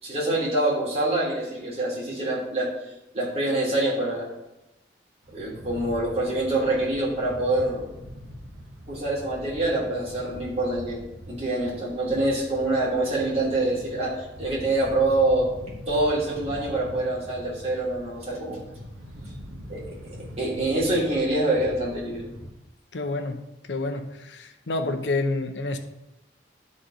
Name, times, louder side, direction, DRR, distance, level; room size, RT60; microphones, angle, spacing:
voice 1, 0.0-2.7 3.1-4.3 5.3-7.8 8.9-15.5 15.9-18.6 19.7-22.2, right 2 dB, 35° right, -6 dB, 3.0 m, -25 dB
sound 1, 5.2-22.5, equal, 65° right, 1.3 m, -42 dB
voice 2, 22.9-23.4 23.7-25.8, left 2 dB, 80° left, 7 dB, 0.8 m, -28 dB
11.5 x 4.2 x 5.1 m, 0.95 s
head